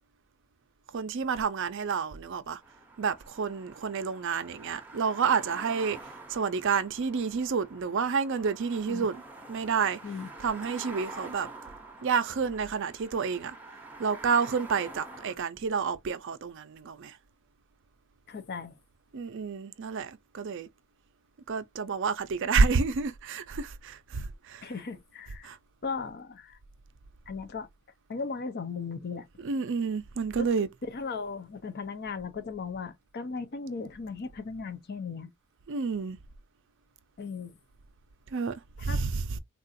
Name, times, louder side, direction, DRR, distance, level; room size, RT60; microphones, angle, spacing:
voice 1, 0.9-2.6 3.0-9.2 9.5-10.0 10.4-11.5 12.0-13.6 14.0-17.2 19.1-20.7 21.5-24.7 25.4-25.6 29.4-30.7 35.7-36.2 38.3-39.4, right 5 dB, 55° right, 0.4 m, -29 dB
sound 1, 2.6-15.4, right 3 dB, 10° right, 0.7 m, -47 dB
voice 2, 18.3-18.7 24.6-25.5 25.8-26.6 27.3-27.7 28.1-29.3 30.4-30.5 30.9-35.3 37.2-37.5 38.9-39.0, left 4 dB, 45° left, 0.5 m, -37 dB
3.7 x 2.4 x 2.6 m
head